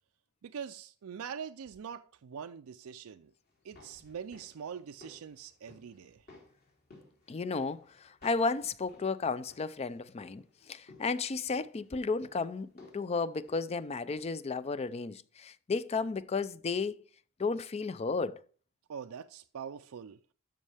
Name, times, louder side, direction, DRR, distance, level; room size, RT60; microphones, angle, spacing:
voice 1, 0.4-3.3 3.6-6.2 18.9-20.2, right 7 dB, 75° right, 0.4 m, -43 dB
sound 1, 3.5-14.5 14.8-14.9, left 2 dB, 45° left, 2.9 m, -59 dB
voice 2, 7.3-12.7 12.9-17.0 17.4-18.4, left 4 dB, 30° left, 0.4 m, -33 dB
12.5 x 5.3 x 3.4 m
head